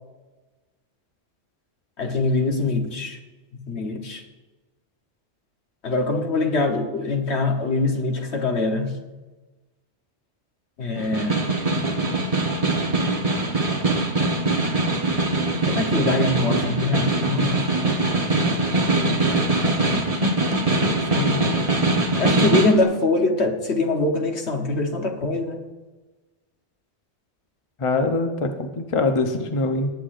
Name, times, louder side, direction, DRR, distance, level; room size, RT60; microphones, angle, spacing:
voice 1, 2.0-3.2 3.7-4.2 5.8-8.9 10.8-11.5 15.7-17.6 21.1-21.4 22.2-25.6, left 3 dB, 70° left, 3 dB, 1.4 m, -23 dB
Snare drum, 11.0-22.8, right 2 dB, 30° right, 1.3 m, -22 dB
voice 2, 27.8-29.9, left 3 dB, 30° left, 5 dB, 0.8 m, -23 dB
19.0 x 8.2 x 2.6 m, 1.2 s
omnidirectional pair, 1.2 m